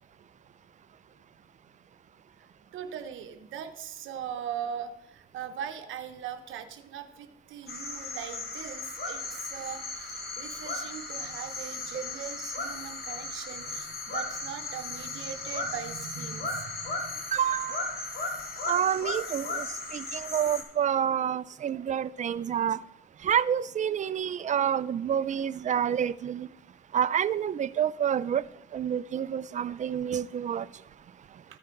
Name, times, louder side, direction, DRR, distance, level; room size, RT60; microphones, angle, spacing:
voice 1, 2.4-17.2 18.1-18.2 20.0-20.1, right 8 dB, 75° right, 0.8 m, -40 dB
sound 1, 7.7-20.6, left 3 dB, 55° left, 2.0 m, -36 dB
voice 2, 17.3-18.0 18.7-22.8 23.2-26.5 26.9-31.4, right 9 dB, 40° right, 0.4 m, -29 dB
13.5 x 5.0 x 4.5 m
cardioid pair, 90°, 20 cm